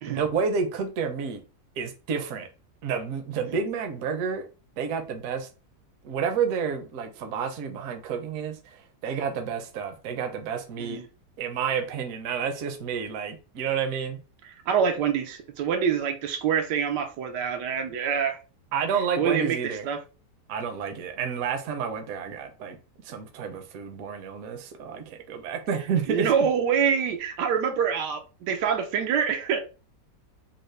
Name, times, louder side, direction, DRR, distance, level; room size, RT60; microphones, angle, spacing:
voice 1, 0.1-1.4 1.8-2.5 2.8-4.5 4.8-5.5 6.0-11.0 11.4-14.2 18.7-19.9 20.5-22.8 23.0-26.3, right 6 dB, 65° right, 1.0 m, -30 dB
voice 2, 14.4-18.4 19.2-20.0 26.1-29.6, right 7 dB, 90° right, 1.3 m, -26 dB
3.9 x 2.0 x 3.1 m
omnidirectional pair, 1.8 m